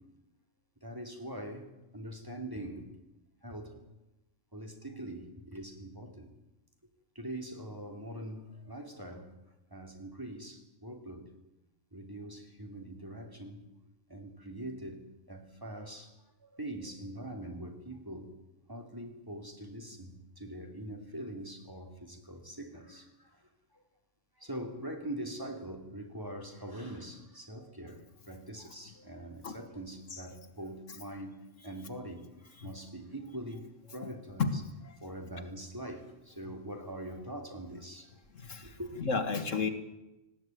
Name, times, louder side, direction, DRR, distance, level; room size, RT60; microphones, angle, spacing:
voice 1, 0.8-2.9 3.4-3.8 4.5-6.3 7.1-9.3 9.7-11.3 11.9-13.7 14.1-16.1 16.4-18.3 18.7-23.8 24.4-34.5 35.0-38.1 38.6-38.9, right 1 dB, 15° right, 3.1 m, -43 dB
voice 2, 34.4-35.0 36.4-36.5 38.3-39.7, left 4 dB, 75° left, 2.1 m, -33 dB
19.5 x 16.5 x 9.3 m
omnidirectional pair, 1.3 m